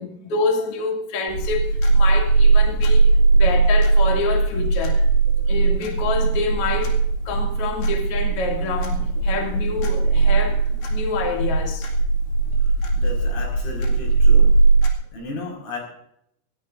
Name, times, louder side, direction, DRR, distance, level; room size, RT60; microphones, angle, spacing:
voice 1, 0.0-5.0 5.3-7.0 7.2-11.9, left 3 dB, 40° left, 2.4 m, -27 dB
sound 1, 1.3-14.9, right 3 dB, 70° left, 4.5 m, -19 dB
voice 2, 13.0-14.5 15.1-15.8, left 3 dB, 85° left, 7.8 m, -34 dB
27.0 x 13.5 x 2.6 m
omnidirectional pair, 5.8 m